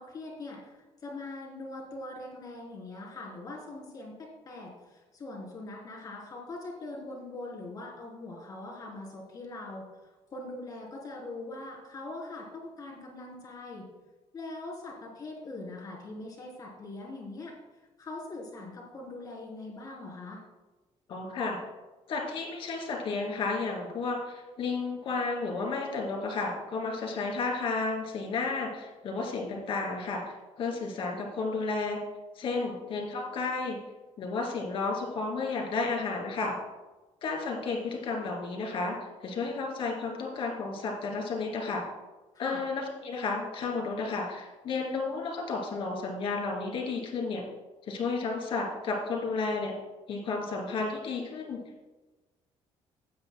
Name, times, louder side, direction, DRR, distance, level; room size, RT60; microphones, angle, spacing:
voice 1, 0.0-9.8 10.3-13.8 14.3-17.5 18.0-20.4 32.6-32.7 42.3-42.6, left 2 dB, 35° left, -2 dB, 3.3 m, -42 dB
voice 2, 21.1-21.6 22.1-32.0 32.3-33.8 34.2-36.5 37.2-39.0 39.2-41.8 42.4-47.4 47.9-49.7 50.1-51.6, left 3 dB, 50° left, 1 dB, 2.8 m, -32 dB
16.0 x 9.4 x 2.2 m, 1.2 s
cardioid pair, 170°, 11 cm